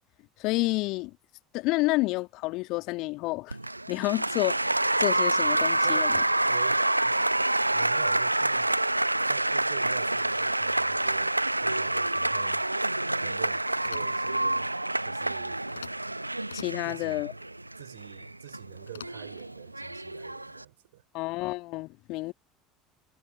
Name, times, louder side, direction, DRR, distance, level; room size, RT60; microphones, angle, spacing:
voice 1, 0.4-1.1 1.5-3.6 3.9-6.2 16.5-17.3 21.1-22.3, left 22 dB, 50° left, 1.8 m, -29 dB
Applause, 3.5-20.6, right 2 dB, 85° right, 0.9 m, -27 dB
voice 2, 5.8-7.2 7.7-8.8 9.3-12.7 13.2-14.7 15.0-15.6 16.8-17.5 17.8-21.0, right 14 dB, 65° right, 5.4 m, -45 dB
sound 1, 13.7-14.3 15.7-16.1 16.4-17.0 18.9-19.5, left 8 dB, 75° left, 7.4 m, -46 dB
figure-of-eight pair, 70°, 0 cm